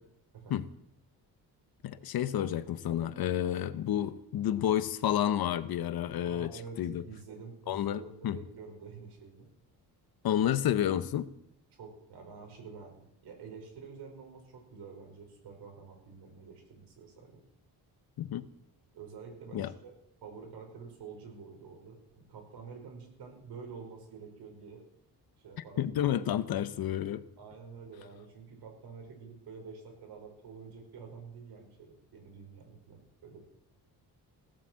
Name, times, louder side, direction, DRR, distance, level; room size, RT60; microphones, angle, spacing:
voice 1, 1.8-6.5 6.8-7.0 7.7-8.4 10.2-11.3 18.2-18.5 19.5-19.7 25.8-27.2, left 11 dB, 65° left, 0.9 m, -30 dB
voice 2, 6.2-9.5 11.7-17.4 18.9-19.9 20.2-24.8 25.4-25.8 27.4-33.4, right 5 dB, 75° right, 5.3 m, -48 dB
16.5 x 9.5 x 7.6 m
cardioid pair, 165°, 40 cm